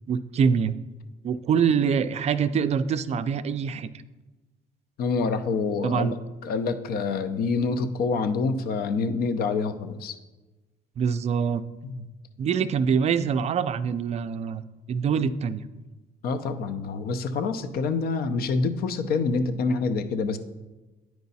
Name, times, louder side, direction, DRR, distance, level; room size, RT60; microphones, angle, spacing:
voice 1, 0.1-0.7 1.2-3.9 5.8-6.2 11.0-11.6 12.4-14.6 14.9-15.6, right 6 dB, 40° right, 12 dB, 0.4 m, -24 dB
voice 2, 5.0-6.2 6.4-10.2 11.8-12.0 16.2-20.4, left 4 dB, 65° left, 10 dB, 0.6 m, -26 dB
9.3 x 4.6 x 4.1 m, 1.1 s
cardioid pair, 110°, 17 cm